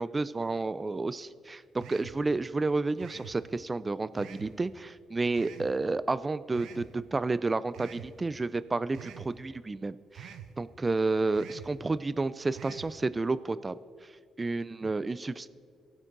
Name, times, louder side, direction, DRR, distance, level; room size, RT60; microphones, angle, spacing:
voice 1, 0.0-14.1 14.4-15.5, right 3 dB, 25° right, 16 dB, 0.3 m, -31 dB
sound 1, 1.8-2.2 3.0-3.4 4.2-4.5 5.4-5.7 6.5-6.9 7.7-8.1 8.9-9.3 10.1-10.5 11.3-11.7 12.5-12.9, right 9 dB, 80° right, 0.8 m, -45 dB
19.0 x 6.3 x 3.9 m, 2.2 s
cardioid pair, 90°, 0 cm